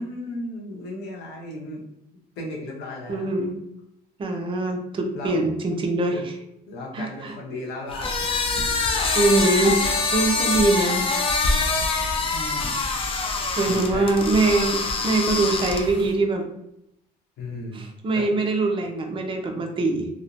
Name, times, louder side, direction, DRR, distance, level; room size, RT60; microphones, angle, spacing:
voice 1, 0.0-1.8 2.4-3.4 4.3-4.4 5.1-5.4 6.0-6.2 6.7-8.7 12.3-12.8 13.6-14.1 17.4-17.9 18.1-18.6, left 1 dB, 75° left, -1 dB, 0.8 m, -35 dB
voice 2, 3.1-3.5 4.2-6.2 6.9-7.3 9.1-9.8 10.1-11.1 13.6-16.5 17.7-20.1, right 2 dB, 30° right, 2 dB, 0.5 m, -23 dB
sound 1, 7.9-16.1, left 3 dB, 35° left, 0.4 m, -24 dB
3.0 x 2.0 x 2.5 m, 0.80 s
cardioid pair, 110°, 17 cm